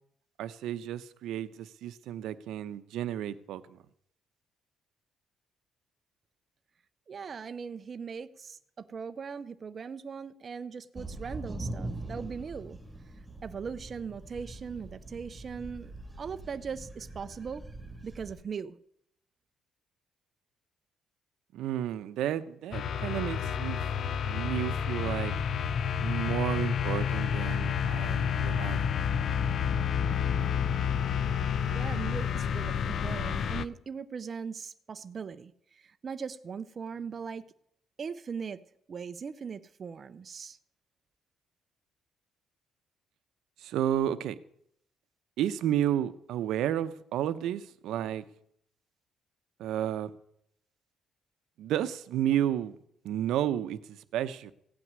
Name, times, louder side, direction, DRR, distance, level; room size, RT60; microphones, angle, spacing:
voice 1, 0.4-3.8 21.5-23.8 24.2-25.3 26.0-28.8 29.2-29.4 43.6-44.4 45.4-48.2 49.6-50.1 51.6-52.8 53.0-54.5, right 11 dB, 85° right, 0.7 m, -32 dB
voice 2, 7.1-12.8 13.4-17.6 18.0-18.8 31.7-37.4 38.0-38.6 38.9-40.6, right 6 dB, 30° right, 0.4 m, -39 dB
sound 1, 10.9-18.4, right 2 dB, 5° right, 1.7 m, -42 dB
sound 2, 22.7-33.6, left 7 dB, 45° left, 0.5 m, -29 dB
16.0 x 6.1 x 9.5 m
cardioid pair, 165°, 0 cm